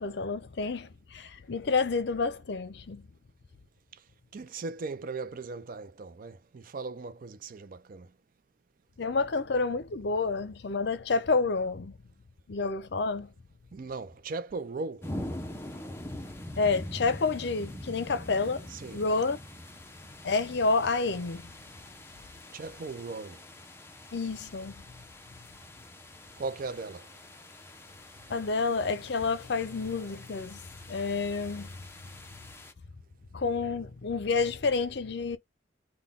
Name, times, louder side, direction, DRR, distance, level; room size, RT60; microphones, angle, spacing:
voice 1, 0.0-3.1 9.0-11.9 12.5-13.3 16.6-18.7 18.9-19.4 20.2-21.5 24.1-24.8 28.3-31.8 33.3-35.4, left 4 dB, 65° left, 0.6 m, -29 dB
voice 2, 4.3-8.1 13.7-15.1 18.7-19.0 22.5-23.4 26.4-27.1, right 3 dB, 50° right, 0.4 m, -38 dB
sound 1, 15.0-32.7, left 1 dB, 15° left, 0.6 m, -44 dB
3.8 x 2.2 x 3.5 m
head